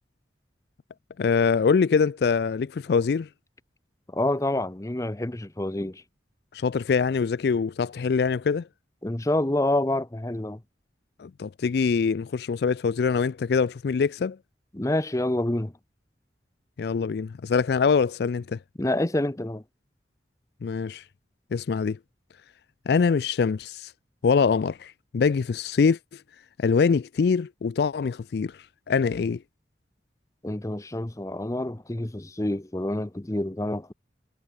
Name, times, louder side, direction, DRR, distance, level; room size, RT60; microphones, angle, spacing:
voice 1, 1.2-3.3 6.5-8.7 11.2-14.4 16.8-18.6 20.6-21.0 21.5-22.0 22.9-23.9 24.2-26.0 26.6-28.5 28.9-29.4, left 5 dB, 60° left, 0.4 m, -24 dB
voice 2, 4.1-6.0 9.0-10.6 14.7-15.7 18.8-19.6 30.4-33.9, left 1 dB, 20° left, 0.8 m, -27 dB
head